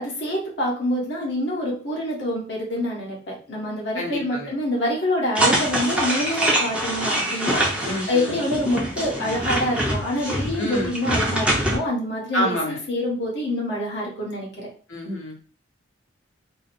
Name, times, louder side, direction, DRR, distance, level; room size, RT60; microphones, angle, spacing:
voice 1, 0.0-14.7, left 1 dB, 55° left, -3 dB, 1.3 m, -26 dB
voice 2, 3.9-4.5 7.8-8.4 10.6-10.9 12.3-12.8 14.9-15.3, equal, 80° left, -1 dB, 1.3 m, -27 dB
sound 1, 5.4-11.8, right 1 dB, 5° right, 0.7 m, -24 dB
3.8 x 2.2 x 4.2 m, 0.39 s
head